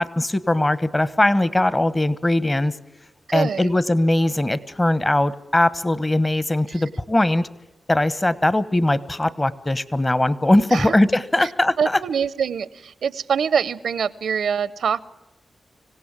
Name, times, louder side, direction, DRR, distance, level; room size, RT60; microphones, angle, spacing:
voice 1, 0.0-2.7 3.3-7.5 7.9-12.0, left 1 dB, 25° left, 17 dB, 1.1 m, -20 dB
voice 2, 3.3-3.8 6.7-6.8 10.7-11.0 11.4-11.5 11.8-15.0, right 7 dB, 85° right, 18 dB, 0.7 m, -24 dB
25.5 x 17.0 x 7.4 m, 1.0 s
cardioid pair, 60°, 0 cm